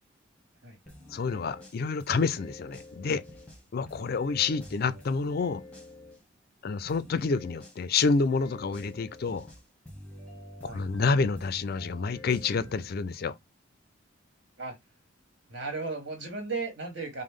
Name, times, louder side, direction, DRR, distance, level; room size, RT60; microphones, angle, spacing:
sound 1, 0.9-6.2 6.9-12.9, left 1 dB, 5° left, 0.9 m, -48 dB
voice 1, 1.1-3.2 3.7-5.6 6.6-9.5 10.7-13.4, left 4 dB, 50° left, 0.4 m, -28 dB
voice 2, 15.5-17.2, right 3 dB, 60° right, 1.6 m, -35 dB
5.1 x 2.1 x 3.6 m
head